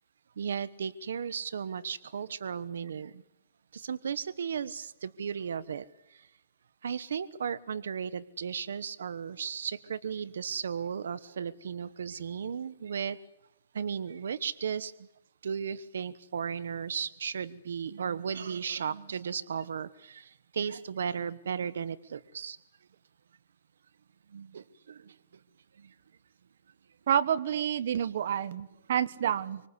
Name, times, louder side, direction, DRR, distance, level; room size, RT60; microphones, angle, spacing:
voice 1, 0.4-3.2 3.7-6.3 6.8-13.2 13.7-14.9 15.4-22.6 24.3-25.2 25.8-25.9 27.9-28.1 29.2-29.3, right 7 dB, 90° right, 16 dB, 1.1 m, -35 dB
voice 2, 27.1-29.6, right 9 dB, 65° right, 15 dB, 1.3 m, -28 dB
27.0 x 25.0 x 8.2 m, 0.80 s
hypercardioid pair, 160°, 0 cm